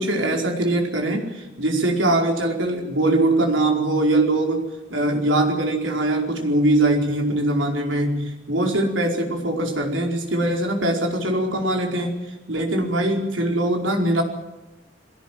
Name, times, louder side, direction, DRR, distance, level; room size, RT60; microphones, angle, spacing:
voice 1, 0.0-12.1 12.5-14.2, right 1 dB, 80° right, 2 dB, 4.8 m, -22 dB
22.5 x 17.0 x 9.2 m, 1.0 s
head